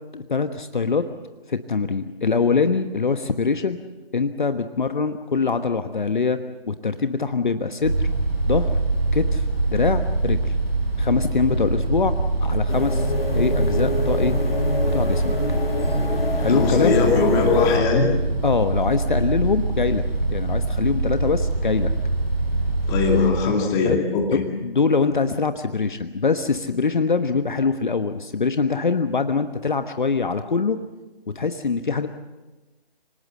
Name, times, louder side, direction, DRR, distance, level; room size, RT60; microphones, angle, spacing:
voice 1, 0.1-1.0 1.5-3.8 4.1-6.4 6.7-8.1 8.5-8.7 9.1-10.5 11.0-12.1 12.4-14.3 14.9-15.4 16.4-17.0 18.4-20.0 20.3-21.9 23.8-24.0 24.3-30.8 31.3-32.1, left 4 dB, 55° left, 9 dB, 1.3 m, -23 dB
sound 1, 7.8-23.3, right 2 dB, 85° right, 7.4 m, -24 dB
sound 2, 12.7-17.8, left 2 dB, 75° left, 3.9 m, -26 dB
voice 2, 16.5-18.1 22.9-24.4, left 4 dB, 10° left, 0 dB, 2.5 m, -20 dB
25.5 x 18.5 x 7.8 m, 1.1 s
figure-of-eight pair, 155°, 30 cm